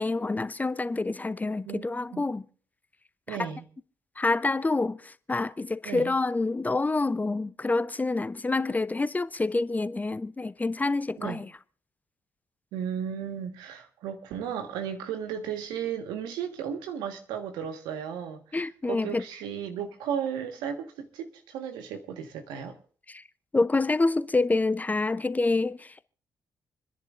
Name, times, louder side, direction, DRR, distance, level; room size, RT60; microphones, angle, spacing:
voice 1, 0.0-2.4 3.3-3.5 4.2-11.5 18.5-19.2 23.1-23.2 23.5-26.0, left 3 dB, 20° left, 0.7 m, -27 dB
voice 2, 1.6-2.2 3.3-3.6 5.8-6.1 11.2-11.4 12.7-22.8, right 8 dB, 80° right, 1.5 m, -35 dB
28.0 x 10.5 x 2.5 m
hypercardioid pair, 45°, 7 cm